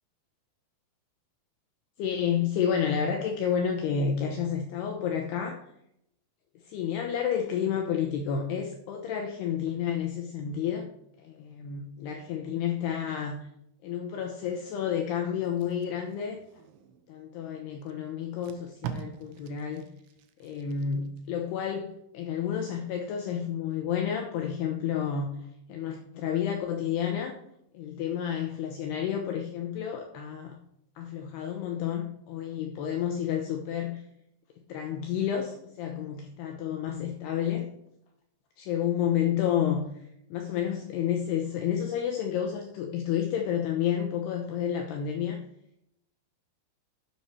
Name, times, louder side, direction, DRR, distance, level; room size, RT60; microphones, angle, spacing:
voice 1, 2.0-5.6 6.6-10.9 11.2-13.5 13.8-16.4 17.1-19.9 20.4-25.4 25.7-27.4 27.7-30.6 31.0-34.0 34.7-37.7 38.6-39.8 40.3-45.4, left 8 dB, 80° left, 3 dB, 2.4 m, -30 dB
Packing tape duct tape, 15.4-17.1 17.8-17.9 18.2-21.2 21.6-21.9, right 8 dB, 80° right, 3.3 m, -43 dB
9.8 x 8.0 x 4.6 m, 0.76 s
omnidirectional pair, 5.7 m